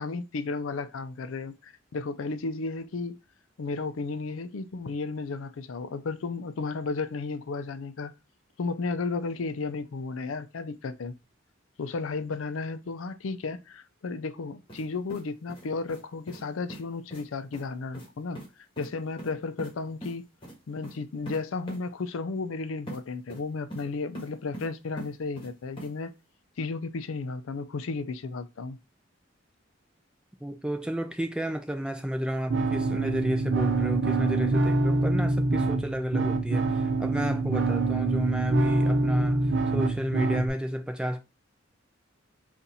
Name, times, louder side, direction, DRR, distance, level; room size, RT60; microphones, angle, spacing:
voice 1, 0.0-3.2 3.6-8.1 8.6-11.1 11.8-18.4 18.8-20.3 20.7-26.1 26.6-28.8, left 4 dB, 90° left, 0.5 m, -33 dB
sound 1, 14.7-14.8 15.1-16.0 16.3-16.4 16.7-16.8 17.1-17.2 17.5-17.6 17.9-18.1 18.3-18.5 18.8-18.9 19.2-19.7 20.0-20.1 20.4-20.5 20.8-21.0 21.3-21.4 21.7-21.8 22.9-23.0 23.3-23.9 24.1-24.7 25.0-25.5 25.8-25.9, right 1 dB, 25° left, 1.3 m, -41 dB
voice 2, 30.4-39.4 39.7-41.2, equal, 5° right, 0.4 m, -31 dB
sound 2, 32.5-40.5, right 3 dB, 65° right, 0.6 m, -25 dB
4.1 x 2.5 x 4.0 m
head